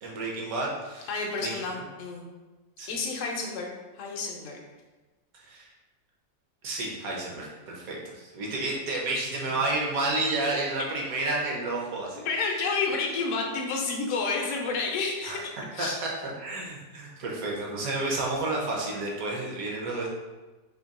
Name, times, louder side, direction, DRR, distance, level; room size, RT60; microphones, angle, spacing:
voice 1, 0.0-1.1 1.4-1.7 2.8-2.9 5.3-5.7 6.6-12.2 15.2-15.4 15.8-20.1, right 2 dB, 60° right, -2 dB, 1.3 m, -31 dB
voice 2, 1.1-2.3 2.9-3.7 3.9-4.6 9.1-9.6 12.1-16.0, left 4 dB, 60° left, 0 dB, 0.9 m, -30 dB
3.7 x 2.8 x 4.1 m, 1.2 s
omnidirectional pair, 1.9 m